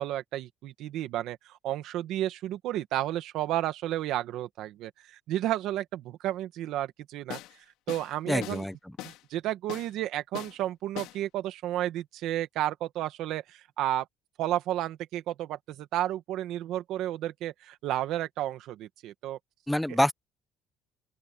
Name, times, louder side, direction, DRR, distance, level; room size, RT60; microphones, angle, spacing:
voice 1, 0.0-7.4 7.9-8.6 9.0-14.1 14.4-19.4 19.9-20.0, right 13 dB, 55° right, 1.7 m, -32 dB
sound 1, 7.3-7.6 7.9-8.1 8.4-8.6 9.0-9.2 9.7-9.9 10.3-10.6 11.0-11.2, left 16 dB, 70° left, 4.1 m, -40 dB
voice 2, 8.3-8.7 19.7-20.1, left 1 dB, 5° left, 1.0 m, -26 dB
open air
cardioid pair, 180°, 0 cm